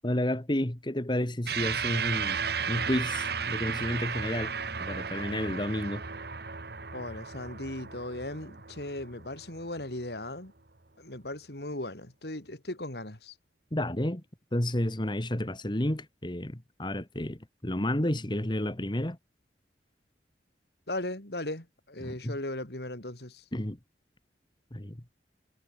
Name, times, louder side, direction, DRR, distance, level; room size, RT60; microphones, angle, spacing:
voice 1, 0.0-2.4 2.7-4.5 4.8-6.0 13.7-14.2 14.5-19.2 22.0-22.4 23.5-23.8 24.7-25.0, left 1 dB, 25° left, 1.8 m, -31 dB
sound 1, 1.5-10.1, right 6 dB, 65° right, 1.8 m, -34 dB
voice 2, 6.9-10.5 11.0-13.3 20.9-23.4, left 1 dB, 65° left, 3.6 m, -37 dB
head